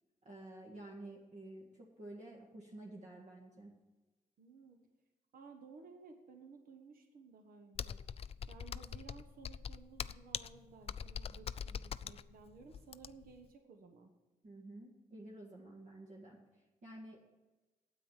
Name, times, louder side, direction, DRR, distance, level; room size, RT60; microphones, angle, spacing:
voice 1, 0.2-3.8 14.4-17.2, right 1 dB, 50° right, -1 dB, 1.8 m, -51 dB
voice 2, 4.4-4.8 5.3-8.0 8.5-14.1, right 4 dB, 75° right, 5 dB, 1.3 m, -57 dB
Computer keyboard, 7.8-13.4, left 7 dB, 45° left, 0.4 m, -43 dB
9.3 x 8.6 x 7.3 m, 1.1 s
cardioid pair, 100°, 15 cm